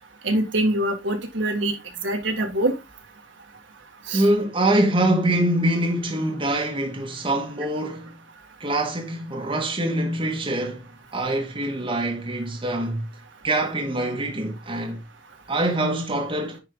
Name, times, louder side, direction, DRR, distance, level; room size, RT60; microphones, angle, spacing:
voice 1, 0.2-1.7 2.0-2.7 4.1-4.2, right 1 dB, 65° right, 1.9 m, -24 dB
voice 2, 4.1-8.2 8.6-13.1 13.4-15.0 15.5-16.6, right 1 dB, 25° right, 1.5 m, -24 dB
10.0 x 4.7 x 3.6 m
head